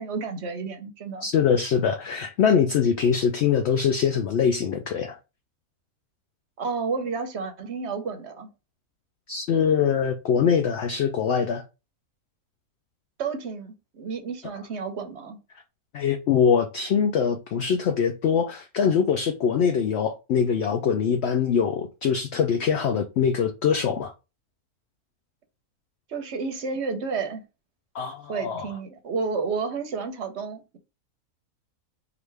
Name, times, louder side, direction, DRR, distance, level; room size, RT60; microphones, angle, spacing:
voice 1, 0.0-1.3 6.6-8.5 13.2-15.4 26.1-27.4 28.3-30.8, right 5 dB, 55° right, 0.9 m, -31 dB
voice 2, 1.2-5.2 9.3-11.6 15.9-24.1 27.9-28.7, left 7 dB, 70° left, 0.6 m, -23 dB
4.9 x 2.5 x 3.3 m
omnidirectional pair, 1.6 m